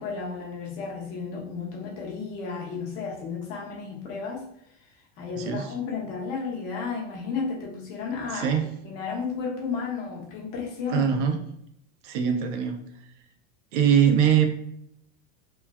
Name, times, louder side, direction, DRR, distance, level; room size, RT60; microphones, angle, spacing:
voice 1, 0.0-4.4 5.2-8.5 8.8-11.1, left 5 dB, 55° left, -2 dB, 0.9 m, -33 dB
voice 2, 5.4-5.7 8.3-8.6 10.9-11.4 12.0-12.8 13.7-14.5, right 8 dB, 65° right, 6 dB, 0.6 m, -22 dB
3.1 x 2.1 x 2.3 m, 0.74 s
supercardioid pair, 125°, 39 cm